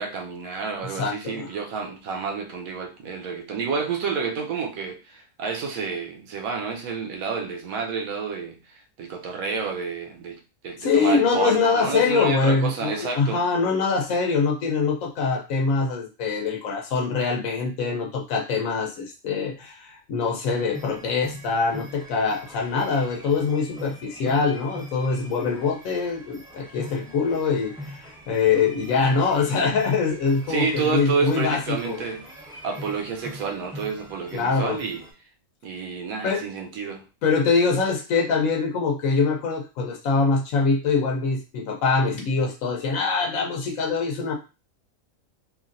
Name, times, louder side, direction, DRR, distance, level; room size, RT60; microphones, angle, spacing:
voice 1, 0.0-8.6 9.0-13.4 30.5-32.3 32.6-35.0 35.6-37.0, right 5 dB, 90° right, 1.1 m, -29 dB
voice 2, 0.9-1.5 10.8-32.0 34.3-34.8 36.2-36.5 37.2-44.3, left 4 dB, 80° left, 1.1 m, -24 dB
sound 1, 20.5-35.1, equal, 5° right, 0.8 m, -42 dB
3.1 x 2.6 x 2.5 m
omnidirectional pair, 1.4 m